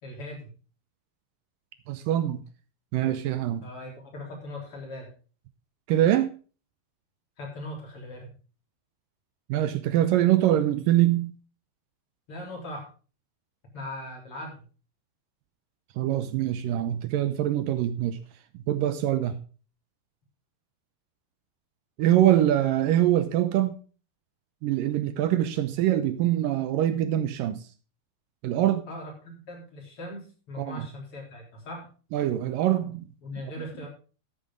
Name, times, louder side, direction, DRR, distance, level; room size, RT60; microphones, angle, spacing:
voice 1, 0.0-0.5 3.6-5.1 7.4-8.3 12.3-12.9 13.7-14.6 19.1-19.2 28.9-31.9 33.2-33.9, left 1 dB, 35° left, 4.4 m, -39 dB
voice 2, 1.9-2.4 2.9-3.7 5.9-6.3 9.5-11.3 16.0-18.2 18.5-19.4 22.0-23.8 24.6-27.6 28.4-28.9 30.6-30.9 32.1-33.1, right 12 dB, 75° right, 2.2 m, -24 dB
13.0 x 9.3 x 3.7 m
omnidirectional pair, 4.5 m